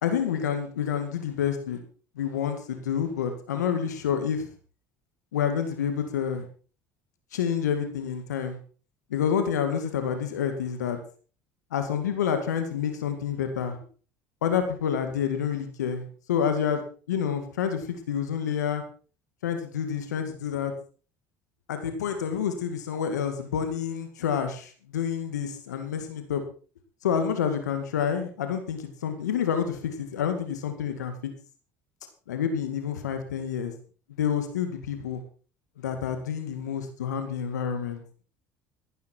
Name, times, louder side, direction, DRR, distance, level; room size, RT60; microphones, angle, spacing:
voice 1, 0.0-1.8 2.2-4.5 5.3-6.5 7.3-8.6 9.1-11.0 11.7-13.8 14.4-16.8 17.1-18.8 19.4-20.7 21.7-26.4 27.0-31.3 32.3-33.7 34.1-35.2 35.8-38.0, left 8 dB, 90° left, 7 dB, 2.1 m, -28 dB
14.5 x 12.5 x 4.5 m, 0.38 s
hypercardioid pair, 70°, 9 cm